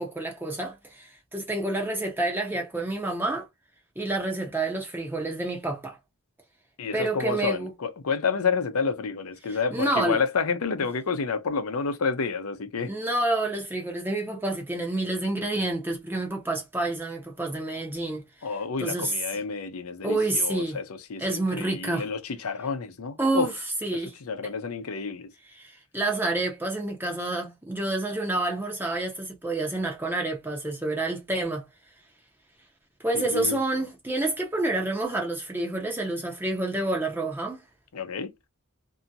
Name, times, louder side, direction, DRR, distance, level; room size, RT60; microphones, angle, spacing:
voice 1, 0.0-3.5 4.0-6.0 6.9-7.7 9.5-10.2 12.9-18.2 18.8-19.1 20.0-20.8 21.2-22.1 23.2-23.5 23.8-24.1 25.6-31.6 33.0-37.6, right 2 dB, 10° right, 0.7 m, -28 dB
voice 2, 6.8-12.9 18.4-23.5 23.9-25.3 33.1-33.8 37.9-38.3, left 5 dB, 85° left, 0.6 m, -29 dB
2.7 x 2.7 x 2.4 m
head